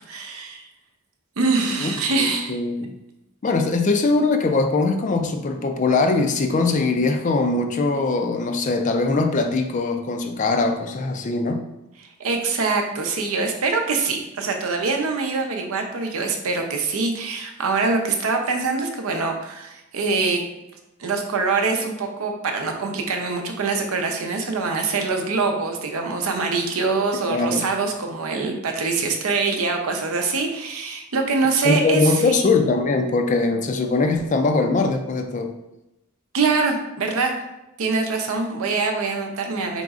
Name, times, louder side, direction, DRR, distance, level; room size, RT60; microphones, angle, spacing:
voice 1, 0.1-0.6 1.4-2.6 12.2-20.4 21.0-32.5 36.3-37.3 37.8-39.8, right 4 dB, 75° right, 3 dB, 0.6 m, -24 dB
voice 2, 1.8-2.9 3.4-11.6 27.3-27.6 31.6-35.5, left 3 dB, 35° left, 5 dB, 0.3 m, -21 dB
4.0 x 3.7 x 2.4 m, 0.91 s
head